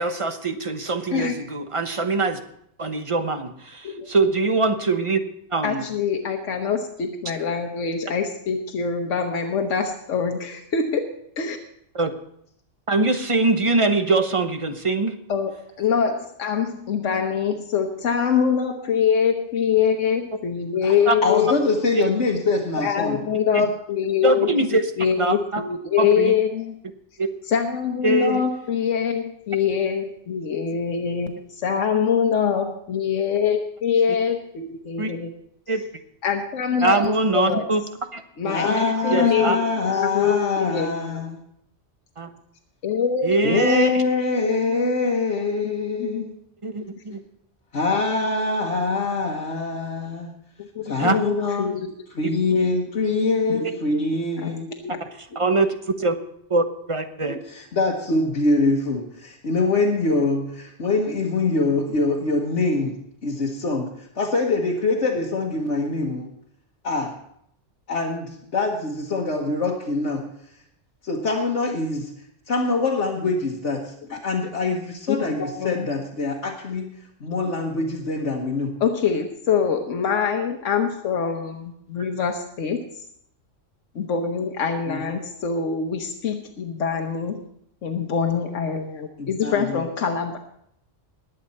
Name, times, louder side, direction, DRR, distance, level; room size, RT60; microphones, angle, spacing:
voice 1, 0.0-2.4 2.8-5.2 5.5-5.8 11.9-12.1 12.9-15.2 21.1-21.2 21.9-22.1 24.2-24.8 25.2-25.6 26.0-26.3 27.2-27.3 28.0-28.4 35.0-35.1 35.7-35.8 36.8-37.8 38.1-38.2 39.1-39.6 42.2-42.3 43.2-44.0 46.6-47.2 51.0-51.2 55.4-56.2 56.5-57.4, right 3 dB, 30° right, 7 dB, 1.0 m, -22 dB
voice 2, 5.6-11.6 15.3-21.6 22.8-24.5 25.0-26.8 27.4-35.3 36.2-37.6 38.4-39.6 40.0-41.2 42.8-43.4 44.1-44.8 46.0-46.2 50.6-52.0 53.2-53.8 54.4-55.0 75.1-75.9 78.8-83.0 83.9-87.4 87.8-90.4, left 7 dB, 85° left, 4 dB, 1.3 m, -24 dB
voice 3, 21.2-23.2 38.5-41.4 43.4-46.4 47.7-50.3 50.8-51.7 52.1-54.7 57.3-63.0 63.2-63.9 64.1-66.3 66.8-67.1 67.9-70.3 71.0-72.1 72.5-78.8 84.9-85.2 89.2-89.8, left 3 dB, 70° left, -2 dB, 1.6 m, -24 dB
21.0 x 8.1 x 4.3 m, 0.71 s
omnidirectional pair, 1.2 m